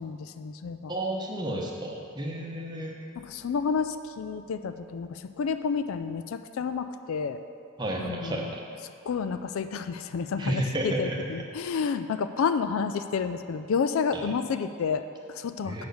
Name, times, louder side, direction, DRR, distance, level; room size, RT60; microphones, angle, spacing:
voice 1, 0.0-0.9 3.2-7.4 8.0-8.5 9.1-15.8, left 5 dB, 75° left, 10 dB, 0.3 m, -30 dB
voice 2, 0.9-3.0 7.8-8.6 10.4-11.2 14.1-14.3 15.7-15.8, right 1 dB, 20° right, -2 dB, 0.9 m, -31 dB
6.2 x 5.1 x 6.9 m, 2.5 s
head